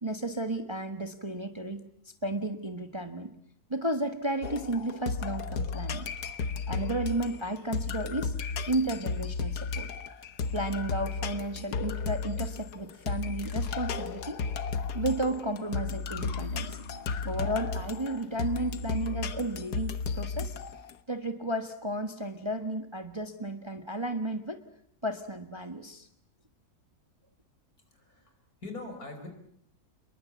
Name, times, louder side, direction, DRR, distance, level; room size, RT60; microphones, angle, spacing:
voice 1, 0.0-1.8 2.2-3.3 3.7-6.1 6.7-8.3 8.7-9.9 10.5-14.4 14.9-16.8 17.2-20.5 21.1-24.6 25.0-26.1, right 1 dB, 20° right, 8 dB, 1.5 m, -33 dB
sound 1, 4.4-20.9, left 5 dB, 85° left, 1.8 m, -34 dB
Acoustic guitar / Strum, 16.2-19.4, left 4 dB, 45° left, 5.9 m, -52 dB
voice 2, 27.8-29.3, left 2 dB, 65° left, 6 dB, 5.4 m, -43 dB
28.0 x 22.0 x 8.4 m, 0.69 s
omnidirectional pair, 1.7 m